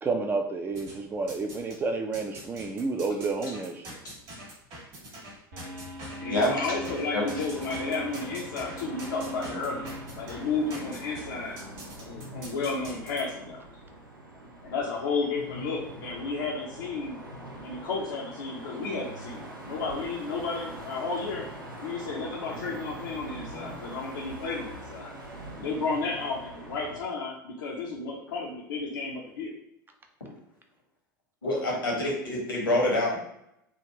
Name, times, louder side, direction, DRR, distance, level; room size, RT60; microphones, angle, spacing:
voice 1, 0.0-3.8 23.4-23.7, right 3 dB, 20° right, 4 dB, 0.4 m, -30 dB
sound 1, 0.7-1.8 2.1-13.2, right 1 dB, 45° right, 1.5 m, -44 dB
sound 2, 5.5-10.6, equal, 60° right, 1.0 m, -40 dB
voice 2, 6.2-9.9 10.2-11.6 12.0-13.6 14.6-17.2 17.6-21.4 21.8-25.1 25.6-29.5, left 4 dB, 65° left, -4 dB, 0.6 m, -32 dB
sound 3, 7.5-27.0, right 1 dB, 85° right, 0.7 m, -43 dB
voice 3, 31.4-33.2, left 1 dB, 85° left, -3 dB, 1.3 m, -26 dB
3.4 x 2.4 x 2.9 m, 0.80 s
figure-of-eight pair, 80°, 11 cm